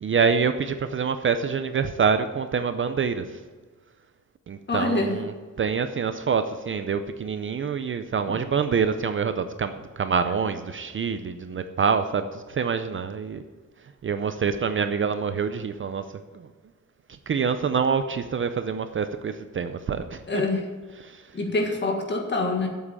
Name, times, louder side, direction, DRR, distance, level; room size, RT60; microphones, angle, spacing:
voice 1, 0.0-3.4 4.5-5.3 5.6-13.4 14.0-16.0 16.3-16.5 17.1-20.5 21.0-21.3, right 6 dB, 40° right, 9 dB, 0.5 m, -26 dB
voice 2, 4.7-5.2 20.3-20.7 21.3-22.7, left 2 dB, 35° left, 2 dB, 1.7 m, -25 dB
8.2 x 7.5 x 8.6 m, 1.4 s
wide cardioid pair, 175°, 32 cm